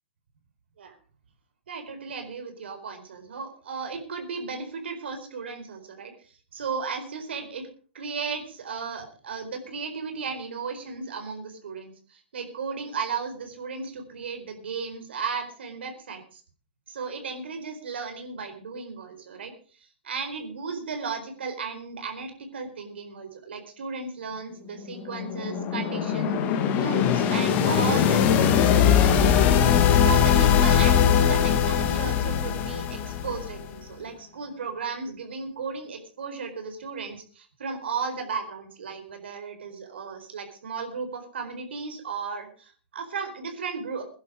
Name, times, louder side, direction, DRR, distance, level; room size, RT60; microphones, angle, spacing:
voice 1, 1.7-7.7 7.9-16.4 16.9-19.5 20.0-29.4 29.9-44.0, right 5 dB, 70° right, 6 dB, 4.5 m, -35 dB
sound 1, 24.8-33.7, left 8 dB, 30° left, 2.2 m, -21 dB
17.5 x 11.0 x 5.0 m, 0.40 s
hypercardioid pair, 135°, 6 cm